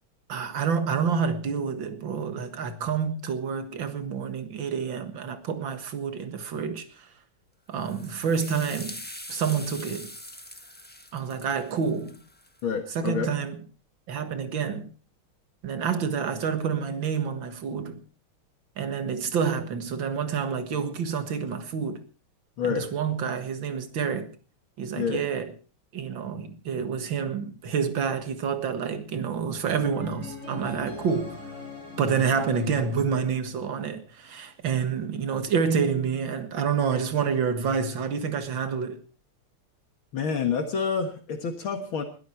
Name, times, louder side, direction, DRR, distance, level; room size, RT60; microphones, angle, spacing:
voice 1, 0.3-7.1 7.7-9.0 9.3-10.1 11.1-12.2 12.9-13.6 14.1-14.9 15.6-18.0 18.8-22.0 22.6-24.3 24.8-25.5 25.9-31.5 32.0-39.0, right 6 dB, 60° right, 2.3 m, -28 dB
sound 1, 7.8-12.6, left 1 dB, 5° left, 1.0 m, -43 dB
voice 2, 12.6-13.3 22.6-22.9 24.9-25.3 40.1-42.0, left 6 dB, 70° left, 2.4 m, -28 dB
sound 2, 29.8-33.9, left 3 dB, 35° right, 7.0 m, -41 dB
21.0 x 13.0 x 4.5 m
omnidirectional pair, 2.4 m